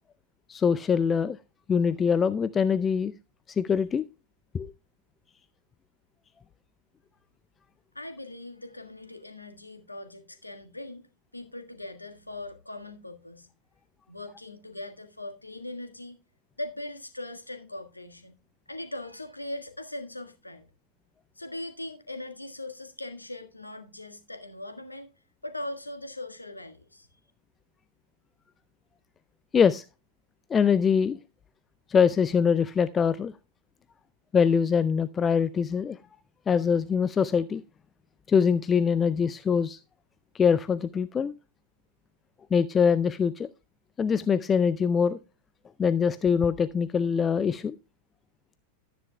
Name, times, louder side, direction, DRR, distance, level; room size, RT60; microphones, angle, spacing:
voice 1, 0.5-1.4 1.7-3.1 3.5-4.0 4.5-4.7 29.5-29.8 30.5-31.2 31.9-33.3 34.3-36.0 36.5-37.6 38.3-39.8 40.3-41.3 42.5-43.5 44.0-45.2 45.8-47.8, left 6 dB, 20° left, 0.4 m, -23 dB
voice 2, 7.9-11.0 11.3-13.5 14.1-16.2 16.6-18.4 18.7-20.6 21.3-25.1 25.4-27.1, left 1 dB, 85° left, 1.5 m, -40 dB
13.0 x 10.0 x 2.2 m
figure-of-eight pair, 90°, 0 cm